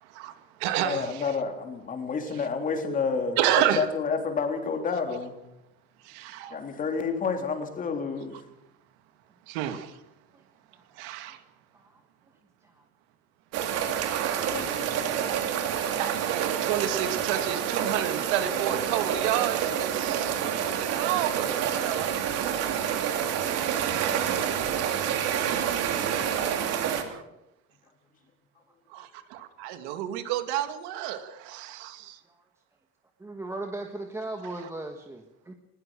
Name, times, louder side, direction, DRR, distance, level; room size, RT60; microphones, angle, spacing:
voice 1, 0.0-1.4 2.3-3.0 3.4-3.9 6.0-6.6 9.5-10.0 10.9-11.4 13.8-14.5 16.0-22.2 24.1-24.9 26.6-27.2 28.9-32.2 34.6-34.7, right 11 dB, 80° right, 9 dB, 2.4 m, -31 dB
voice 2, 0.8-3.4 3.8-5.4 6.5-8.4 14.5-15.3, left 5 dB, 25° left, 5 dB, 3.4 m, -30 dB
sound 1, 13.5-27.0, right 9 dB, 50° right, 3.2 m, -28 dB
voice 3, 33.2-35.5, right 2 dB, 10° right, 4 dB, 1.4 m, -37 dB
21.0 x 20.5 x 6.3 m, 0.86 s
cardioid pair, 165°, 32 cm